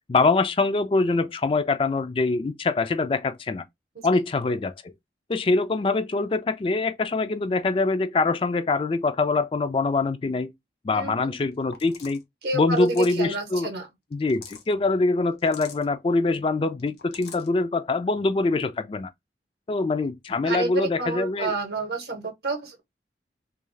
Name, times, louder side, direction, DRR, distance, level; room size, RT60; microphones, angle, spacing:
voice 1, 0.1-3.6 4.0-4.9 5.3-10.5 10.8-12.2 12.5-13.7 14.1-19.1 19.7-21.5, left 3 dB, 30° left, 0.3 m, -24 dB
voice 2, 10.9-11.4 12.4-13.9 20.4-22.8, right 3 dB, 65° right, 0.8 m, -30 dB
sound 1, 11.7-12.2 12.7-13.3 14.1-14.7 15.4-15.8 16.8-17.5, left 6 dB, 65° left, 0.7 m, -44 dB
2.4 x 2.3 x 3.1 m
head